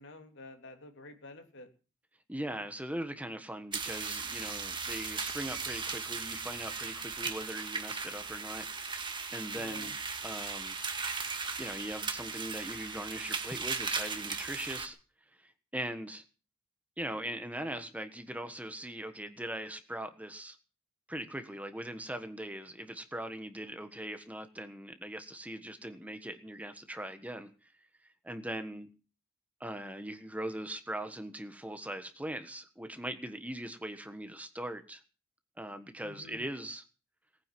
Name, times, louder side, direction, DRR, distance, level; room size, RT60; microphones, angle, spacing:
voice 1, 0.0-1.7 9.5-9.9 36.0-36.5, left 2 dB, 60° left, 5 dB, 3.1 m, -50 dB
voice 2, 2.3-9.9 10.2-10.7 11.6-15.0 15.4-16.2 17.0-20.6 21.1-27.7 28.2-28.9 29.6-35.0 35.6-36.8, right 1 dB, 5° right, 8 dB, 1.4 m, -40 dB
sound 1, 3.7-14.9, right 5 dB, 20° right, 2.0 m, -37 dB
19.0 x 9.8 x 7.7 m, 0.36 s
head